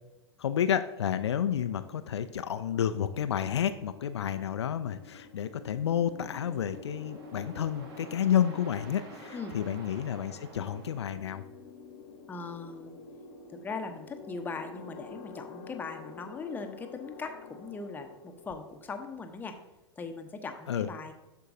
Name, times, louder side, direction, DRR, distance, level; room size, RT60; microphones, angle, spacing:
voice 1, 0.4-11.4 20.7-20.9, left 9 dB, 70° left, 10 dB, 0.4 m, -30 dB
sound 1, 1.3-11.2, right 2 dB, 50° right, 1.3 m, -51 dB
sound 2, 2.7-19.6, left 5 dB, 40° left, 0.9 m, -49 dB
voice 2, 12.3-13.0 13.5-19.6 20.0-21.1, left 4 dB, 10° left, 5 dB, 0.7 m, -40 dB
12.5 x 4.6 x 2.6 m, 1.1 s
figure-of-eight pair, 95°, 15 cm